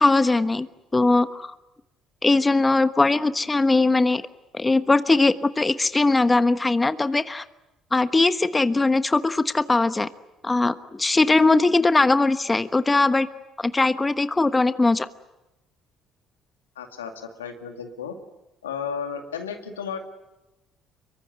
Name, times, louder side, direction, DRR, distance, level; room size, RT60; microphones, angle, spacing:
voice 1, 0.0-0.7 0.9-1.5 2.2-4.2 4.5-7.4 7.9-10.1 10.4-13.3 13.6-15.1, left 3 dB, 20° left, 11 dB, 1.2 m, -20 dB
voice 2, 16.8-18.2 18.6-20.0, left 7 dB, 90° left, 5 dB, 2.4 m, -33 dB
26.0 x 23.5 x 9.5 m, 0.96 s
hypercardioid pair, 55°, 0 cm